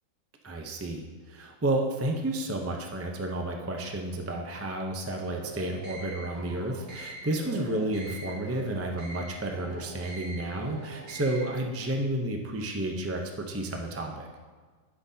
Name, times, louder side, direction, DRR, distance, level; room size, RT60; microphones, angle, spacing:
voice 1, 0.4-13.2 13.5-14.3, right 1 dB, 20° right, 2 dB, 0.3 m, -31 dB
sound 1, 5.3-11.6, right 2 dB, 75° right, 1.6 m, -43 dB
12.0 x 5.9 x 2.7 m, 1.4 s
omnidirectional pair, 1.5 m